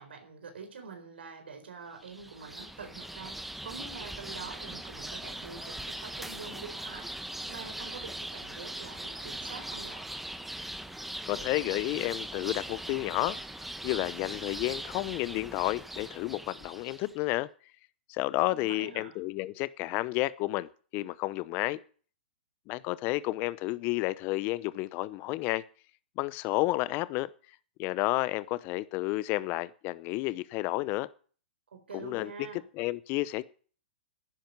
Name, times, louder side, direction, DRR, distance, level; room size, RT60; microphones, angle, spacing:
voice 1, 0.0-10.1 18.4-19.2 31.7-32.6, right 5 dB, 75° right, 4.2 m, -46 dB
sound 1, 2.0-17.2, right 1 dB, 5° right, 1.1 m, -40 dB
voice 2, 11.3-13.4 13.8-17.5 18.1-21.8 22.7-25.6 26.2-27.3 27.8-31.1 31.9-32.5 32.8-33.4, left 19 dB, 35° left, 0.8 m, -31 dB
11.0 x 10.5 x 8.1 m
hypercardioid pair, 120°, 6 cm